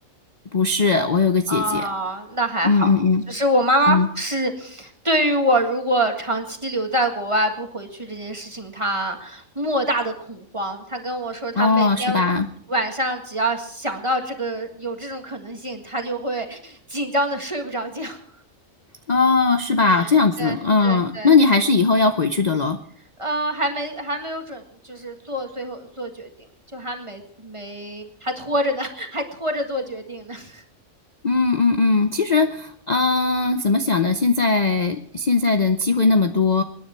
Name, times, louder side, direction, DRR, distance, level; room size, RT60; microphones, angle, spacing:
voice 1, 0.5-1.9 2.6-3.2 3.9-4.1 11.6-12.5 19.1-22.8 31.2-36.6, left 4 dB, 40° left, 8 dB, 0.7 m, -19 dB
voice 2, 1.5-2.9 3.3-12.2 12.7-18.2 19.8-20.1 20.4-21.3 23.2-26.3 26.7-30.6, right 1 dB, 20° right, 5 dB, 1.8 m, -25 dB
26.0 x 10.0 x 4.5 m, 0.62 s
omnidirectional pair, 1.4 m